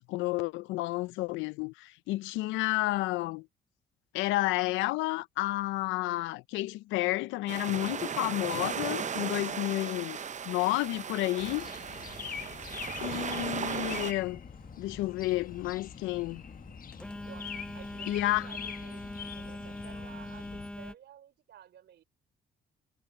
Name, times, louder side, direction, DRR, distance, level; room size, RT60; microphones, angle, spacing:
voice 1, 0.1-3.5 4.1-10.2 10.5-11.7 13.0-14.4 14.8-16.4 18.1-18.5, left 18 dB, 90° left, 0.7 m, -31 dB
sound 1, 7.5-14.1, right 7 dB, 40° right, 0.7 m, -36 dB
voice 2, 9.5-10.1 17.2-22.0, right 10 dB, 65° right, 4.1 m, -53 dB
sound 2, 11.4-20.7, left 7 dB, 45° left, 1.2 m, -44 dB
Telephone, 12.0-21.0, left 1 dB, 5° left, 0.8 m, -45 dB
supercardioid pair, 70°, 19 cm